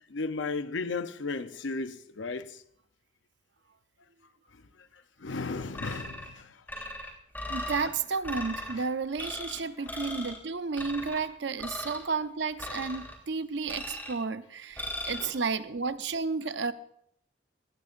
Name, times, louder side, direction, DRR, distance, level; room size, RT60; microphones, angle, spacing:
voice 1, 0.1-2.6 5.2-6.9 9.8-9.9 15.1-15.3, left 3 dB, 85° left, 0.8 m, -35 dB
sound 1, 5.7-6.3 6.7-7.9 8.2-8.7 9.2-9.6 9.9-10.4 10.8-11.2 11.6-12.0 12.6-13.2 13.7-14.2 14.8-15.2, left 1 dB, 10° left, 3.3 m, -38 dB
voice 2, 7.5-16.7, right 4 dB, 75° right, 0.7 m, -32 dB
19.5 x 16.0 x 2.6 m
head